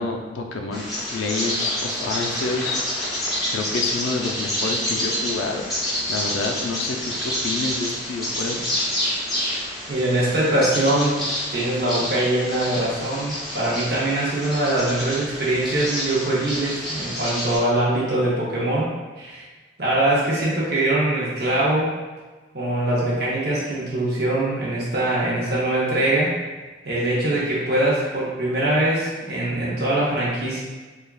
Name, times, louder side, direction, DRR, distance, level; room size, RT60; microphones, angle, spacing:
voice 1, 0.0-3.1 3.5-5.7 6.1-8.6, left 3 dB, 80° left, 2 dB, 0.4 m, -28 dB
Bird vocalization bird call bird song, 0.7-17.6, equal, ahead, 0.8 m, -28 dB
voice 2, 9.9-11.2 11.5-18.9 19.2-19.4 19.8-21.9 22.5-26.3 26.8-30.6, right 1 dB, 55° right, -8 dB, 0.7 m, -22 dB
3.3 x 2.3 x 2.3 m, 1.3 s
head